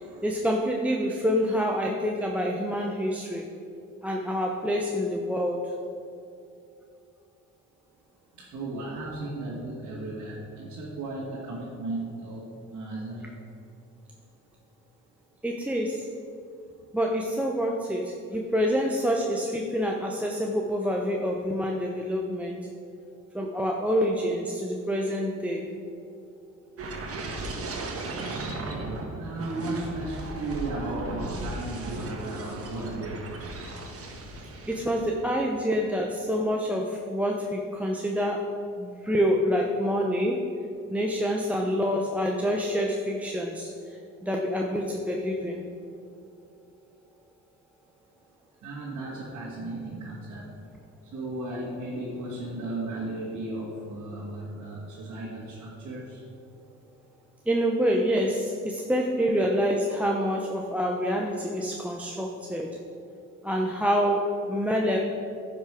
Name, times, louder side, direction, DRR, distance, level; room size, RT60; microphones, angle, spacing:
voice 1, 0.0-3.5 4.0-5.7 15.4-16.1 16.9-22.7 23.3-25.7 34.7-38.4 38.8-40.5 40.9-45.7 57.5-62.8 63.4-65.0, equal, 5° right, 0 dB, 0.7 m, -27 dB
voice 2, 8.4-13.3 29.2-33.2 48.6-50.5 51.1-56.2, right 2 dB, 70° right, -6 dB, 2.0 m, -35 dB
sound 1, 26.8-35.3 35.6-35.9, right 2 dB, 50° right, 1.4 m, -36 dB
10.5 x 5.9 x 5.0 m, 2.6 s
cardioid pair, 90°, 30 cm